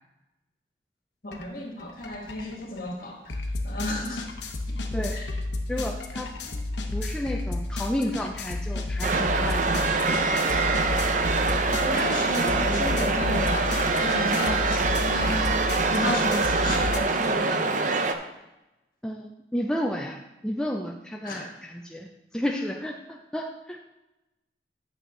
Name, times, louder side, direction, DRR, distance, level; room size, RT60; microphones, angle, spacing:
voice 1, 1.2-4.2 4.7-4.8 5.1-5.2 11.8-13.7 14.0-17.9 21.2-21.5, left 1 dB, 50° left, -1 dB, 1.9 m, -33 dB
sound 1, 1.3-1.5 1.8-17.0, left 2 dB, 80° left, 0.9 m, -32 dB
voice 2, 5.7-6.3 6.9-9.7 19.0-23.8, equal, 5° left, 0 dB, 0.4 m, -32 dB
sound 2, 9.0-18.1, right 3 dB, 45° right, 0.6 m, -24 dB
9.3 x 6.4 x 3.8 m, 0.98 s
head